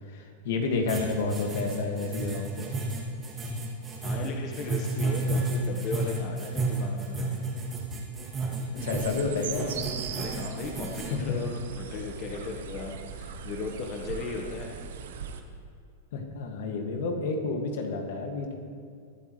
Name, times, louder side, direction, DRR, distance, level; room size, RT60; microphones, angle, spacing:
voice 1, 0.1-2.7 8.8-9.8 11.1-11.4 16.1-18.6, left 3 dB, 70° left, 3 dB, 2.0 m, -30 dB
sound 1, 0.9-11.1, right 3 dB, 20° right, 2.5 m, -32 dB
voice 2, 4.0-7.4 10.1-14.8, left 4 dB, 40° left, 1 dB, 1.2 m, -36 dB
sound 2, 8.8-15.4, right 6 dB, 75° right, 1.1 m, -39 dB
22.0 x 9.2 x 3.2 m, 2.3 s
hypercardioid pair, 125°, 0 cm